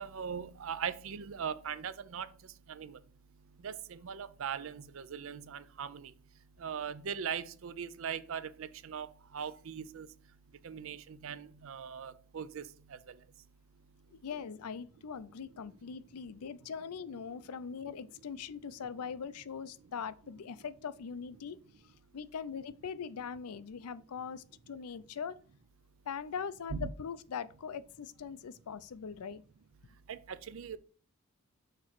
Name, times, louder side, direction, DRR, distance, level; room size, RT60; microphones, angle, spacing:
voice 1, 0.0-2.3 2.7-3.0 3.6-6.1 6.6-10.1 10.6-12.6 26.7-26.9 30.1-30.2 30.5-30.8, right 7 dB, 65° right, 0.4 m, -40 dB
voice 2, 14.1-21.6 22.1-25.4 26.1-29.4, left 6 dB, 85° left, 0.5 m, -41 dB
6.6 x 3.0 x 5.9 m
head